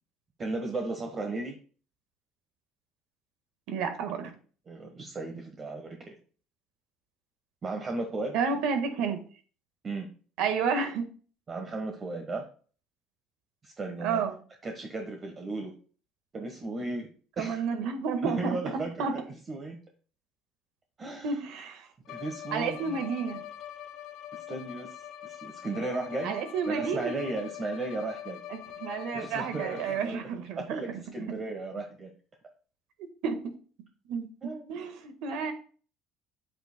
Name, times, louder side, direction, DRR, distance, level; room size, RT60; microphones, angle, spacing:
voice 1, 0.4-1.6 4.7-6.2 7.6-8.4 9.8-10.1 11.5-12.4 13.6-14.2 14.6-15.7 16.3-17.1 17.4-17.6 18.2-19.8 21.0-21.4 22.1-23.0 24.3-24.9 25.2-26.3 26.7-28.4 29.1-30.2 30.5-32.1 34.4-34.8, right 2 dB, 30° right, 1.3 m, -35 dB
voice 2, 3.7-4.3 8.3-9.2 10.4-11.0 14.0-14.4 17.4-18.6 19.0-19.1 21.2-21.9 22.5-23.4 26.2-27.1 28.5-30.6 33.2-33.4 34.1-34.3 34.7-35.5, right 5 dB, 75° right, 1.5 m, -30 dB
Bowed string instrument, 22.1-30.3, left 11 dB, 70° left, 0.8 m, -43 dB
8.5 x 7.9 x 2.2 m
cardioid pair, 110°, 0 cm